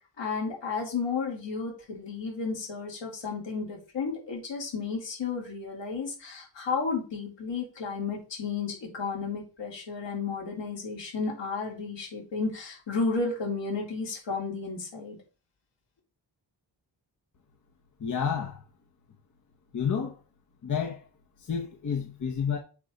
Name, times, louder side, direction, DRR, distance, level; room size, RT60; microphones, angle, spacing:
voice 1, 0.2-15.2, left 4 dB, 75° left, 3.6 m, -33 dB
voice 2, 18.0-18.6 19.7-20.2 20.6-21.0 21.4-22.6, left 7 dB, 45° left, 1.0 m, -30 dB
7.2 x 4.9 x 4.0 m
wide cardioid pair, 135°, 44 cm